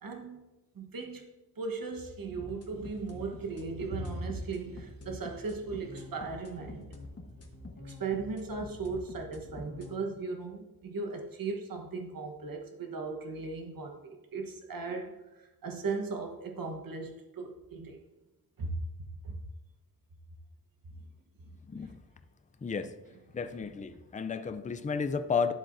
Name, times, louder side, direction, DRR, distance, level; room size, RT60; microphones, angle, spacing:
voice 1, 0.0-0.4 0.7-1.3 1.6-7.0 7.8-18.0 18.6-19.4, right 4 dB, 60° right, 3 dB, 1.2 m, -37 dB
sound 1, 2.4-9.9, left 2 dB, 40° left, 1.2 m, -46 dB
voice 2, 21.6-22.0 22.6-23.0 23.3-25.5, left 5 dB, 20° left, 9 dB, 0.4 m, -32 dB
11.5 x 7.9 x 2.6 m, 1.1 s
wide cardioid pair, 165°, 39 cm